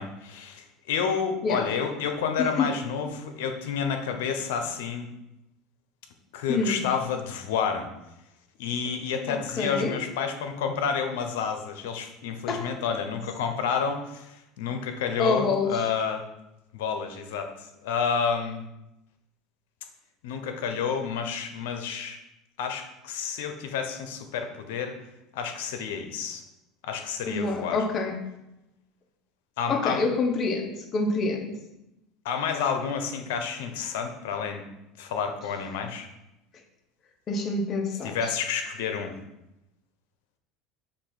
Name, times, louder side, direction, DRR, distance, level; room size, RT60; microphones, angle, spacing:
voice 1, 0.0-5.1 6.3-7.9 8.6-16.2 16.7-17.5 17.8-18.6 20.2-22.2 22.6-25.0 25.3-26.4 26.8-27.8 29.6-30.0 32.2-34.6 35.0-36.1 38.0-39.2, left 6 dB, 85° left, 6 dB, 0.8 m, -30 dB
voice 2, 2.4-2.7 6.5-6.8 9.3-10.0 12.5-12.7 15.2-15.8 27.2-28.2 29.7-31.6 37.3-38.2, left 3 dB, 40° left, 5 dB, 0.9 m, -27 dB
6.9 x 2.6 x 5.1 m, 0.89 s
supercardioid pair, 110°, 0 cm